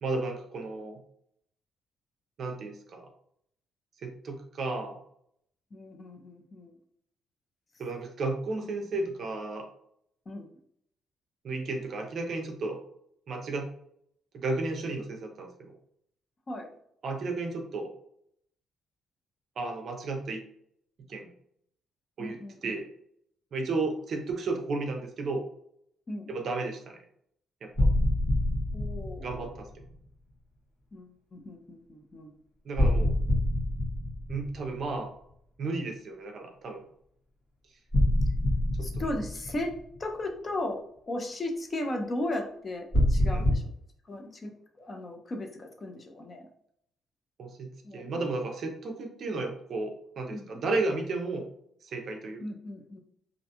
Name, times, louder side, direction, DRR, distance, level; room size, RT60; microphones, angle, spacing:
voice 1, 0.0-1.0 2.4-3.0 4.0-5.0 7.8-9.7 11.4-12.8 13.3-13.7 14.3-15.7 17.0-17.9 19.6-20.4 21.1-21.3 22.2-22.9 23.5-25.5 26.3-27.0 27.6-27.9 29.2-29.7 32.6-33.1 34.3-35.1 35.6-36.8 38.8-38.9 43.3-43.5 47.4-51.5 51.8-52.4, right 3 dB, 45° right, 3 dB, 0.4 m, -33 dB
voice 2, 5.7-6.7 10.3-10.5 16.5-16.7 22.2-22.8 26.1-26.3 28.7-29.5 30.9-32.3 38.8-43.7 44.0-46.5 47.8-48.2 50.3-50.6 52.4-53.0, left 1 dB, 25° left, 3 dB, 0.3 m, -36 dB
sound 1, 27.8-29.8 32.8-35.1 37.9-40.0 42.9-43.6, left 1 dB, 40° left, 1.1 m, -26 dB
2.4 x 2.2 x 2.7 m, 0.70 s
cardioid pair, 160°, 0 cm